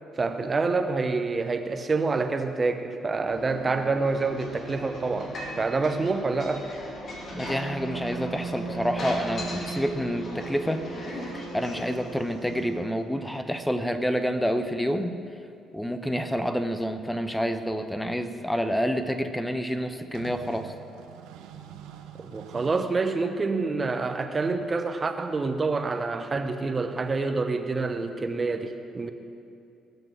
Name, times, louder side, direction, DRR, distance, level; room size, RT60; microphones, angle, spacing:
voice 1, 0.2-6.7 22.2-29.1, right 3 dB, 30° right, 7 dB, 0.9 m, -27 dB
sound 1, 3.2-12.6, right 3 dB, 80° left, 3.9 m, -39 dB
sound 2, 4.0-12.0, left 1 dB, 50° left, 2.5 m, -39 dB
sound 3, 6.6-6.7 7.2-7.3 10.2-10.3 10.5-10.6 11.7-12.1 13.5-13.6 13.9-14.0 15.3-15.4 17.0-17.1 18.0-18.1 18.6-18.8 20.1-22.8, right 9 dB, 70° right, 0.9 m, -45 dB
voice 2, 7.3-10.8 11.3-15.2 15.7-20.7, equal, 5° left, 8 dB, 0.9 m, -28 dB
21.0 x 7.0 x 6.0 m, 2.5 s
figure-of-eight pair, 45°, 0 cm